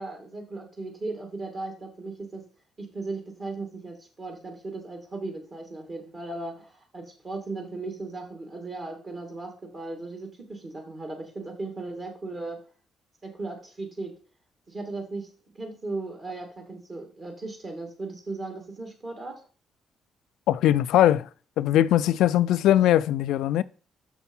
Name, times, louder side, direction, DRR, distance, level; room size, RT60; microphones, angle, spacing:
voice 1, 0.0-2.4 2.8-12.6 13.2-14.1 14.7-15.3 15.5-19.4, right 3 dB, 40° right, 2.4 m, -37 dB
voice 2, 20.5-21.3 21.6-23.6, left 12 dB, 85° left, 0.3 m, -20 dB
6.5 x 6.0 x 5.4 m
cardioid pair, 90°, 0 cm